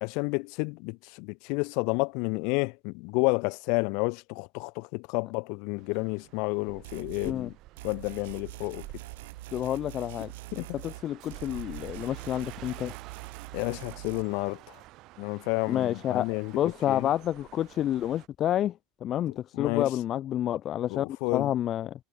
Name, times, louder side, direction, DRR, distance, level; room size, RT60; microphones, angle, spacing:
voice 1, 0.0-7.5 7.8-8.8 10.5-10.7 13.5-14.7 15.2-17.1 19.5-19.9 20.9-21.5, left 33 dB, 70° left, 1.3 m, -30 dB
sound 1, 5.8-18.3, right 18 dB, 60° right, 4.7 m, -49 dB
sound 2, 6.8-7.4 7.8-11.1 11.3-14.2, right 19 dB, 85° right, 1.4 m, -44 dB
voice 2, 9.5-12.9 15.7-18.7 19.0-21.1 21.3-21.9, left 11 dB, 45° left, 0.5 m, -29 dB
supercardioid pair, 110°, 0 cm